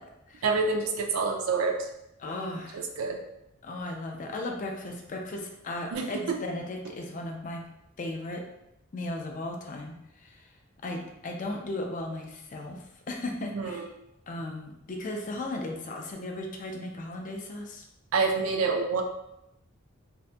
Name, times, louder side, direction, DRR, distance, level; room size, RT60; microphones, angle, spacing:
voice 1, 0.4-1.9 2.7-3.2 5.9-6.4 13.5-13.9 18.1-19.0, right 4 dB, 85° right, 3 dB, 0.4 m, -27 dB
voice 2, 2.2-2.8 3.6-7.6 8.0-8.4 8.9-9.9 10.2-10.4 10.8-13.9 14.3-17.8, left 2 dB, 40° left, 2 dB, 0.4 m, -36 dB
2.6 x 2.5 x 2.2 m, 0.84 s
head